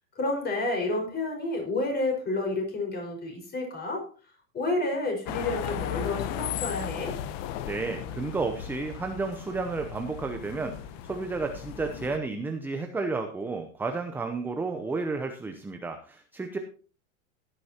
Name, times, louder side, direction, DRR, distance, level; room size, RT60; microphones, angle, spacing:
voice 1, 0.2-4.0 4.5-7.1, left 2 dB, 25° left, 2 dB, 5.2 m, -30 dB
sound 1, 5.3-12.2, left 10 dB, 45° left, 1.0 m, -36 dB
voice 2, 7.7-10.7 11.1-16.6, right 3 dB, 5° right, 5 dB, 0.7 m, -32 dB
17.0 x 9.9 x 2.9 m, 0.39 s
supercardioid pair, 140°, 41 cm